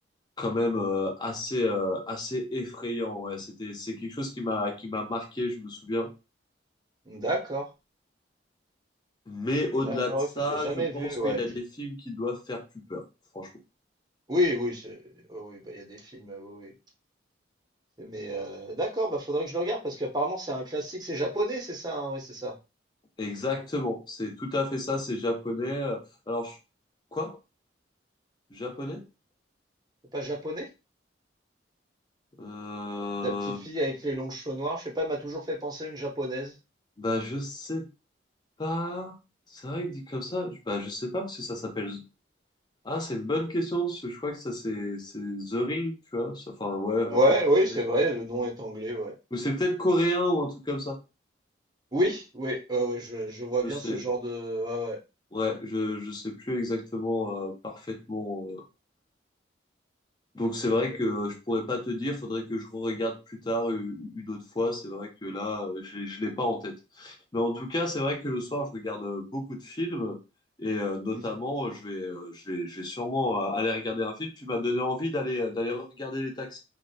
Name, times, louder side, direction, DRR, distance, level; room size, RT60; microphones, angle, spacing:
voice 1, 0.4-6.1 9.3-12.6 12.9-13.0 13.3-13.5 23.2-26.6 27.1-27.4 28.5-29.0 32.4-33.6 37.0-37.9 38.6-39.1 39.5-42.0 42.8-47.2 49.3-51.0 53.6-54.0 55.3-58.6 60.3-70.2 70.6-76.6, left 1 dB, 25° left, 3 dB, 0.5 m, -31 dB
voice 2, 7.1-7.7 9.8-11.4 14.3-15.0 15.3-16.7 18.0-22.5 30.1-30.7 33.2-36.5 47.1-49.1 51.9-55.0 71.1-71.2, right 1 dB, 20° right, 0 dB, 0.6 m, -29 dB
2.5 x 2.1 x 2.6 m, 0.27 s
head